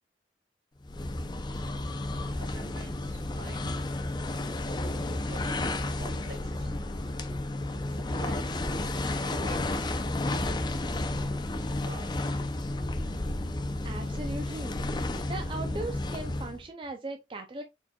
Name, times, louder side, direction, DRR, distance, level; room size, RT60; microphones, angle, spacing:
sound 1, 0.8-16.7, left 2 dB, 25° left, 0.5 m, -32 dB
voice 1, 2.4-3.8 5.2-6.8 7.9-8.5 9.0-9.8 11.6-12.2, right 2 dB, 85° right, 2.0 m, -47 dB
voice 2, 13.8-14.8 15.3-17.6, right 2 dB, 30° right, 0.5 m, -38 dB
4.4 x 4.3 x 2.3 m
head